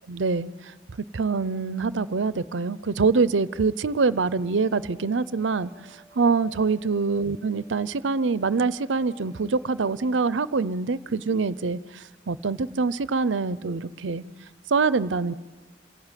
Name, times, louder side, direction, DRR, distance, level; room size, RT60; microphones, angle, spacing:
voice 1, 0.1-0.5 1.1-5.7 6.2-14.2 14.7-15.3, right 4 dB, 70° right, 17 dB, 0.6 m, -25 dB
sound 1, 4.0-10.1, equal, 10° right, 7.7 m, -57 dB
27.0 x 17.0 x 9.1 m, 1.3 s
head